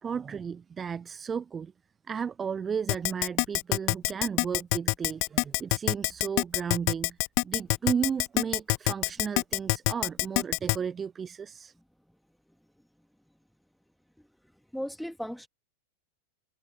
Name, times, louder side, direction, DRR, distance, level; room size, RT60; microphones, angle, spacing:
voice 1, 0.0-1.7 2.1-7.2 7.4-11.7, right 6 dB, 20° right, 0.5 m, -34 dB
Keyboard (musical), 2.9-10.8, left 34 dB, 45° left, 1.0 m, -25 dB
voice 2, 14.7-15.5, equal, ahead, 2.8 m, -36 dB
figure-of-eight pair, 90°, 0 cm